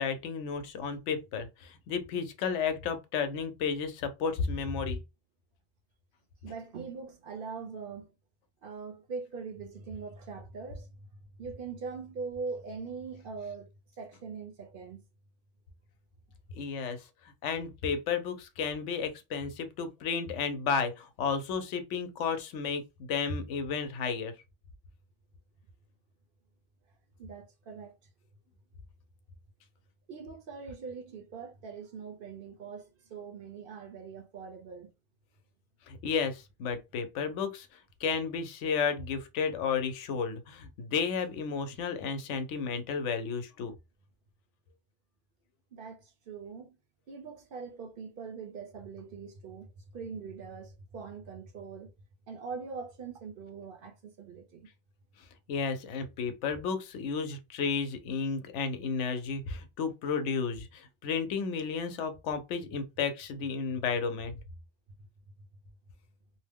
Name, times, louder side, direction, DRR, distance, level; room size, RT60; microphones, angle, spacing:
voice 1, 0.0-5.0 16.5-17.0 17.4-24.3 35.9-37.7 38.0-43.7 55.5-64.4, left 5 dB, 85° left, 1.0 m, -32 dB
voice 2, 6.4-8.1 8.6-11.1 11.4-13.7 14.0-15.0 16.8-16.9 27.2-28.0 30.1-34.9 45.7-46.8 47.1-51.9 52.3-54.7, right 5 dB, 60° right, 0.7 m, -42 dB
2.6 x 2.1 x 3.4 m
omnidirectional pair, 1.2 m